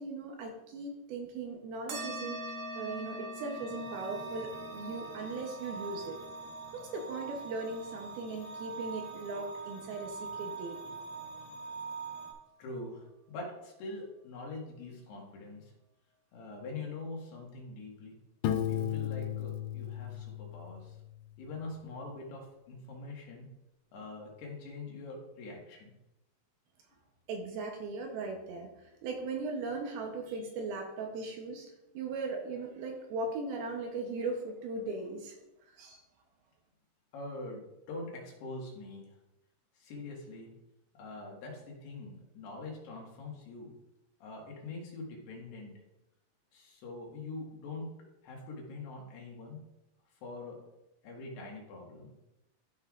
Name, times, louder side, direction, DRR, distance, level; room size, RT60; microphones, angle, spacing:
voice 1, 0.0-2.4 2.8-6.2 6.7-11.0 27.3-28.7 29.0-31.7 31.9-35.3 35.8-36.0, right 3 dB, 75° right, 2 dB, 2.5 m, -38 dB
sound 1, 1.9-10.8, right 1 dB, 55° right, 2.2 m, -45 dB
sound 2, 3.2-12.3, right 5 dB, 50° left, 2.1 m, -44 dB
voice 2, 12.6-15.7 16.3-18.2 18.7-21.0 21.4-23.5 23.9-25.9 37.1-39.1 39.8-40.5 41.0-43.7 44.2-45.7 46.5-47.9 48.2-49.6 50.2-50.6 51.0-52.1, left 2 dB, 75° left, -1 dB, 3.6 m, -44 dB
Piano, 18.4-21.2, left 11 dB, 90° left, 2.9 m, -35 dB
13.5 x 5.5 x 2.4 m, 0.93 s
omnidirectional pair, 4.9 m